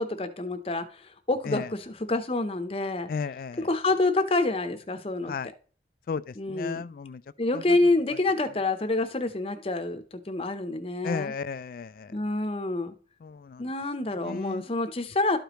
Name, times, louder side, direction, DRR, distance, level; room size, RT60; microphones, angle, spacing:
voice 1, 0.0-3.1 3.6-5.3 6.4-6.9 7.4-11.3 12.1-13.0 13.6-15.4, left 2 dB, 30° left, 0.7 m, -27 dB
voice 2, 3.1-3.7 5.3-5.5 6.1-7.2 7.5-7.8 11.0-12.1 13.2-13.7 14.2-14.6, left 5 dB, 50° left, 0.3 m, -34 dB
12.5 x 5.0 x 3.0 m
head